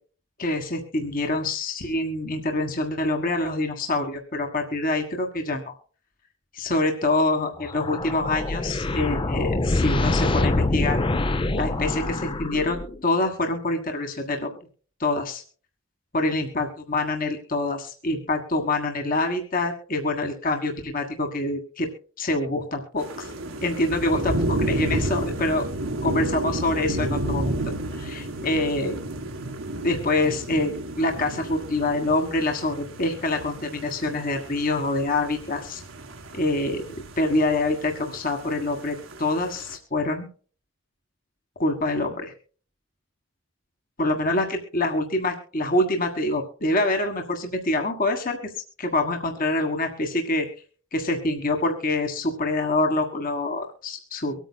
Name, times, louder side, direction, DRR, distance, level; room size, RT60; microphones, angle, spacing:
voice 1, 0.4-5.6 6.5-11.0 11.5-14.5 15.0-15.4 16.1-21.9 22.2-23.3 23.6-25.7 26.0-27.5 28.0-29.0 29.8-35.8 36.3-40.3 41.6-42.3 44.0-48.4 48.8-50.5 50.9-54.3, left 2 dB, 45° left, 4 dB, 1.6 m, -25 dB
sound 1, 7.6-13.1, left 2 dB, 25° left, 0.6 m, -25 dB
sound 2, 23.0-39.8, right 1 dB, 80° right, 1.9 m, -32 dB
24.0 x 9.1 x 2.2 m, 0.41 s
head